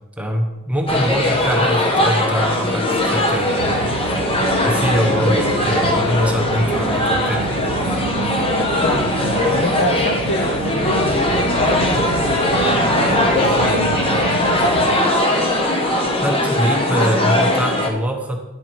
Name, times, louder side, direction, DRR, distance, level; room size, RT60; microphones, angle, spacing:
voice 1, 0.2-3.9 4.7-7.5 16.2-18.4, equal, 5° right, 2 dB, 0.9 m, -23 dB
sound 1, 0.9-17.9, left 1 dB, 25° left, 1.0 m, -19 dB
sound 2, 3.6-15.0, right 6 dB, 80° right, 0.3 m, -29 dB
voice 2, 8.8-14.0, left 1 dB, 45° left, 5 dB, 0.8 m, -26 dB
10.0 x 4.7 x 4.4 m, 1.0 s
head